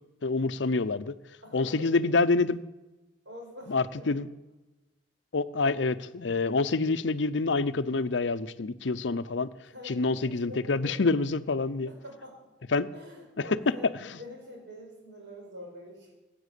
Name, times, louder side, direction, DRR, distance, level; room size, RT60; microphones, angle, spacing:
voice 1, 0.2-1.1 1.5-2.6 3.7-4.3 5.3-9.5 9.8-11.9 12.7-12.9 13.4-13.7, left 3 dB, 75° left, 14 dB, 0.7 m, -27 dB
voice 2, 1.4-2.3 3.3-4.2 9.7-11.0 11.9-12.4 12.9-16.1, left 1 dB, 70° right, 1 dB, 5.4 m, -46 dB
18.5 x 8.8 x 8.3 m, 1.1 s
head